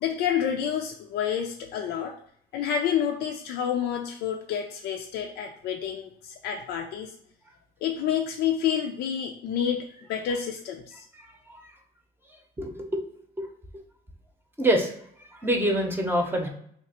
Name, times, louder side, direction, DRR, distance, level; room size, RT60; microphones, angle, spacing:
voice 1, 0.0-2.1 2.5-7.1 7.8-11.0, left 8 dB, 80° left, 2 dB, 0.4 m, -29 dB
voice 2, 11.1-11.6 12.6-13.0 13.4-13.5 14.6-14.9 15.2-16.5, right 1 dB, 10° right, 2 dB, 0.7 m, -26 dB
2.9 x 2.5 x 4.2 m, 0.65 s
cardioid pair, 110°, 17 cm